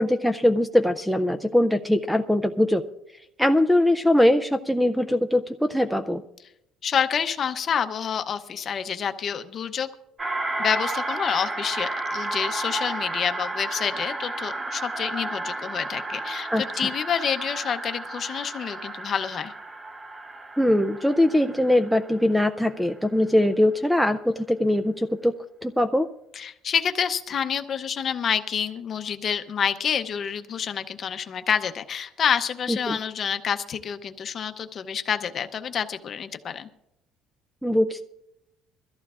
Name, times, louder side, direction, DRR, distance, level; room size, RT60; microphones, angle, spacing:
voice 1, 0.0-2.8 3.4-6.2 16.5-16.6 20.6-25.3 25.6-26.1 32.7-33.0 37.6-38.0, left 1 dB, ahead, 10 dB, 0.4 m, -21 dB
voice 2, 6.8-9.9 10.6-19.5 26.3-36.7, left 7 dB, 35° left, 9 dB, 0.7 m, -28 dB
sound 1, 10.2-22.9, right 2 dB, 15° right, 0.8 m, -32 dB
22.5 x 14.0 x 2.4 m, 0.85 s
cardioid pair, 160°, 0 cm